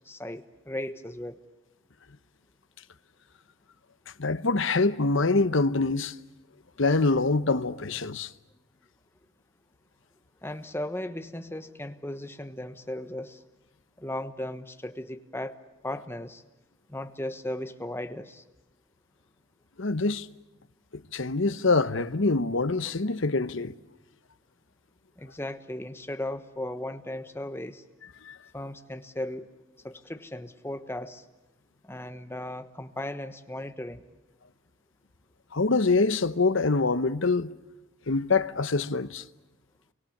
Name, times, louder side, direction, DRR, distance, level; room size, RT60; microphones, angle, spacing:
voice 1, 0.0-1.4 10.4-13.4 14.0-15.6 15.8-16.4 16.9-18.4 25.2-27.8 28.5-29.5 29.8-31.2 31.8-34.0, left 1 dB, 10° left, 1.2 m, -36 dB
voice 2, 4.2-6.2 6.8-8.3 19.8-20.3 21.1-23.8 28.2-28.4 35.5-37.5 38.1-39.2, left 3 dB, 65° left, 0.9 m, -25 dB
30.0 x 24.0 x 7.3 m
head